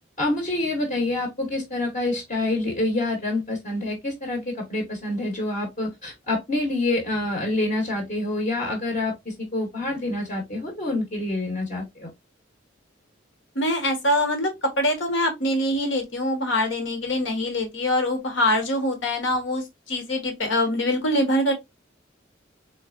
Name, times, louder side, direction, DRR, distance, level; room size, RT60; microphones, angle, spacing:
voice 1, 0.2-12.1, left 2 dB, 40° left, 1.0 m, -27 dB
voice 2, 13.5-21.5, left 1 dB, 80° left, 1.3 m, -24 dB
3.8 x 3.2 x 2.5 m
head